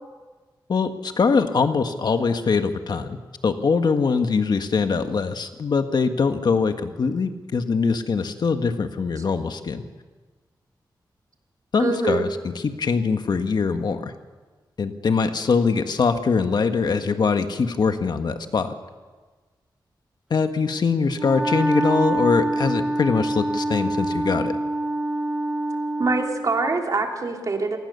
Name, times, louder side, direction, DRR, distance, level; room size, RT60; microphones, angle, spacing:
voice 1, 0.7-3.2 3.4-9.8 11.7-14.1 14.8-18.7 20.3-24.5, left 5 dB, 60° left, 7 dB, 1.6 m, -22 dB
voice 2, 11.8-12.2 26.0-27.8, right 3 dB, 45° right, 2 dB, 3.1 m, -24 dB
Wind instrument woodwind instrument, 21.1-26.5, right 1 dB, 10° right, 1.1 m, -25 dB
27.0 x 19.5 x 6.9 m, 1.3 s
wide cardioid pair, 130°, 8 cm